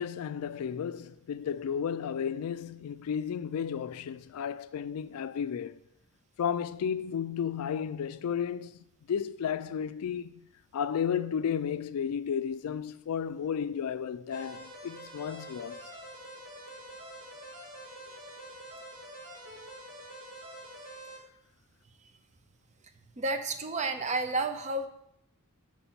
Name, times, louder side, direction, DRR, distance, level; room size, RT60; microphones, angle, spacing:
voice 1, 0.0-5.8 6.4-8.8 9.1-10.4 10.7-15.8, left 7 dB, 75° left, 0.3 m, -33 dB
sound 1, 14.3-21.2, right 1 dB, 60° right, 3.1 m, -46 dB
voice 2, 23.2-24.9, right 2 dB, 30° right, 0.5 m, -31 dB
5.9 x 4.3 x 5.6 m
head